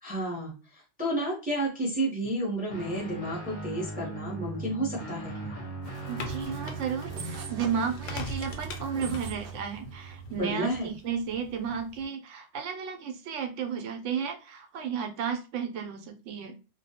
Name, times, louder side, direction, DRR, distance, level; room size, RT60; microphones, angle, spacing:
voice 1, 0.0-5.5 10.3-10.9, right 1 dB, 10° right, -3 dB, 0.6 m, -31 dB
Guitar, 2.7-10.4, right 3 dB, 50° left, 0.6 m, -39 dB
sound 1, 5.8-12.0, left 1 dB, 90° left, 0.9 m, -42 dB
sound 2, 5.8-9.7, right 3 dB, 60° right, 0.7 m, -44 dB
voice 2, 6.1-16.5, right 7 dB, 85° right, 4 dB, 0.9 m, -33 dB
2.3 x 2.0 x 2.7 m, 0.32 s
omnidirectional pair, 1.2 m